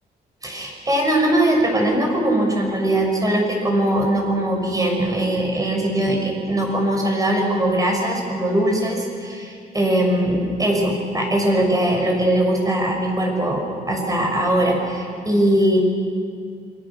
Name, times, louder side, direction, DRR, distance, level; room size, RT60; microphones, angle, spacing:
voice 1, 0.4-15.8, right 1 dB, 20° right, 1 dB, 6.3 m, -20 dB
27.5 x 24.5 x 7.2 m, 2.3 s
cardioid pair, 120°, 17 cm